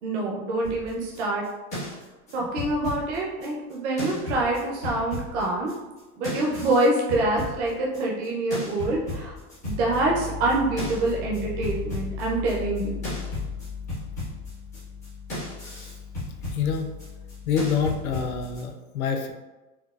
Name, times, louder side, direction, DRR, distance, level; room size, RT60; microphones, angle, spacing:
voice 1, 0.0-1.4 2.3-5.7 6.2-9.4 9.6-13.0, right 2 dB, 50° right, -3 dB, 0.6 m, -26 dB
sound 1, 0.6-3.7 4.0-6.0 6.2-8.3 8.5-18.6, left 3 dB, 15° left, 0.3 m, -35 dB
voice 2, 16.5-16.9 17.5-19.3, left 6 dB, 65° left, 4 dB, 0.6 m, -26 dB
4.4 x 2.2 x 2.3 m, 1.2 s
supercardioid pair, 170°, 46 cm